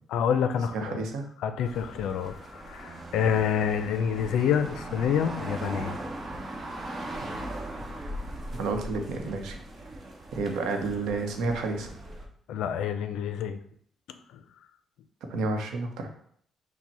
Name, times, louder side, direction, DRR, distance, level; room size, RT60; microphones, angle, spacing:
voice 1, 0.1-1.0 1.4-6.0 12.5-13.6 14.1-14.2, left 8 dB, 85° left, 10 dB, 0.4 m, -27 dB
voice 2, 0.7-1.2 8.5-9.6 10.3-11.9 15.3-16.1, right 3 dB, 85° right, 4 dB, 0.7 m, -30 dB
sound 1, 1.6-12.3, right 1 dB, 40° right, 1.0 m, -39 dB
6.0 x 2.1 x 4.2 m, 0.63 s
cardioid pair, 90°, 0 cm